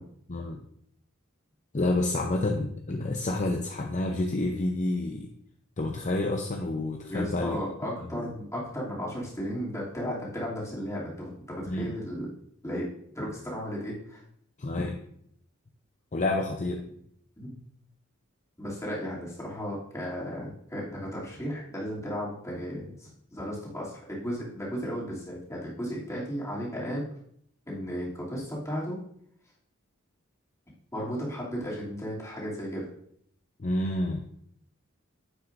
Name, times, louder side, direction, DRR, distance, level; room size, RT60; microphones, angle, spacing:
voice 1, 0.3-0.6 1.7-5.3 5.8-7.6 8.1-8.3 11.7-11.9 14.6-15.0 16.1-16.8 33.6-34.3, left 2 dB, 35° left, 2 dB, 0.6 m, -29 dB
voice 2, 7.1-12.3 12.6-14.2 17.4-17.6 18.6-27.0 27.7-29.0 30.9-32.9, equal, 15° left, -6 dB, 2.7 m, -35 dB
9.8 x 7.6 x 2.6 m, 0.67 s
head